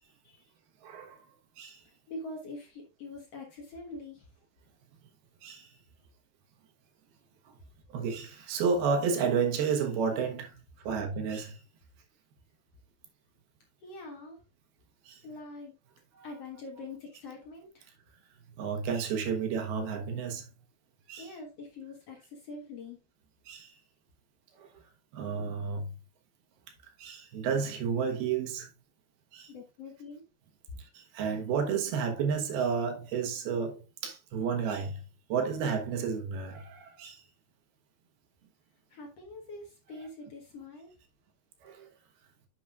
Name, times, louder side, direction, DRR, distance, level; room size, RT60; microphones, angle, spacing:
voice 1, 0.8-1.2 1.6-1.8 5.4-5.7 7.9-11.6 15.1-15.2 16.2-16.3 18.6-20.5 21.1-21.3 23.5-23.7 24.5-24.8 25.1-25.9 27.0-28.7 29.3-29.5 30.8-35.0 35.3-37.2 41.6-41.9, right 6 dB, 70° right, 3.0 m, -31 dB
voice 2, 2.1-4.3 13.8-14.4 15.2-15.8 16.2-17.8 21.2-23.0 29.5-30.2 38.9-40.9, left 2 dB, 65° left, 1.6 m, -44 dB
10.0 x 7.2 x 2.4 m
omnidirectional pair, 4.9 m